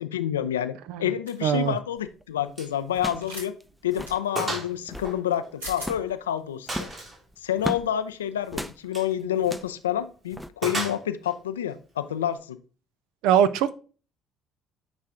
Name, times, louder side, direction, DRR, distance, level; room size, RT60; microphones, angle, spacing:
voice 1, 0.0-0.7 1.0-3.5 3.8-6.9 7.4-12.6, left 10 dB, 90° left, 12 dB, 0.4 m, -28 dB
sound 1, 1.3-1.5 3.2-3.5 4.0-4.2 5.3-5.4 5.6-5.9, equal, 90° right, 2.0 m, -38 dB
voice 2, 1.4-1.8 13.2-13.8, right 9 dB, 70° right, 15 dB, 0.4 m, -21 dB
sound 2, 2.0-2.2 2.9-3.3 3.6-3.7 3.9-4.2 4.7-5.2 5.8-6.1 6.7-7.9 8.5-8.8 9.4-9.8 10.3-10.5, equal, 5° right, 0.5 m, -35 dB
Gunshot gunfire, 2.6-2.8 3.1-3.2 3.7-3.8 4.4-4.7 5.0-6.0 6.7-7.2 8.8-9.1 10.6-11.4, right 2 dB, 40° right, 2.6 m, -33 dB
9.4 x 3.2 x 3.6 m, 0.37 s
hypercardioid pair, 55°, 0 cm